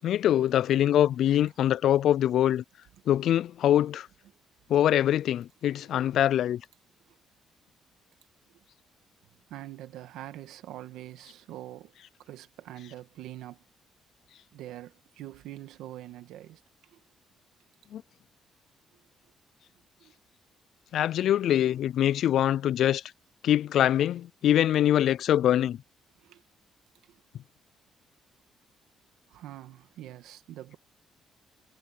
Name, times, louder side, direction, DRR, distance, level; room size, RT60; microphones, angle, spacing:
voice 1, 0.0-2.6 3.1-4.1 4.7-6.6 17.9-18.0 20.9-23.0 23.4-25.8, left 11 dB, 75° left, 0.3 m, -24 dB
voice 2, 9.5-11.9 12.2-13.6 14.5-17.0 20.0-20.1 26.2-26.4 27.0-27.2 29.3-30.8, right 14 dB, 90° right, 1.6 m, -44 dB
cardioid pair, 90°, 0 cm